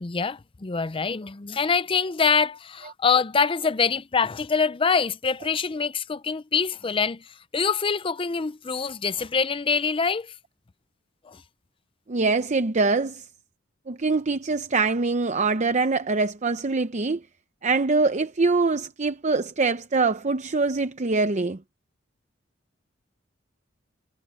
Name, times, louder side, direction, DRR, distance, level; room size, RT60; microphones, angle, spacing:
voice 1, 0.0-10.3 11.3-11.4, left 5 dB, 30° left, 0.5 m, -25 dB
voice 2, 12.1-13.3 13.9-17.2 17.6-21.6, right 3 dB, 40° right, 0.7 m, -24 dB
head